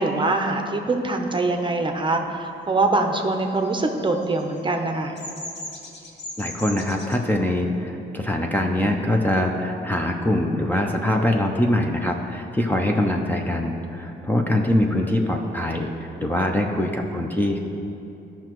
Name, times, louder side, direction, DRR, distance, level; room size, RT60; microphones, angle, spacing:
voice 1, 0.0-5.2, right 2 dB, 25° right, 4 dB, 0.8 m, -23 dB
Bird vocalization bird call bird song, 3.5-7.2, left 1 dB, 60° left, 1.5 m, -37 dB
voice 2, 6.4-17.6, left 1 dB, 10° left, 1 dB, 0.6 m, -23 dB
13.5 x 5.7 x 3.0 m, 2.8 s
cardioid pair, 90°, 20 cm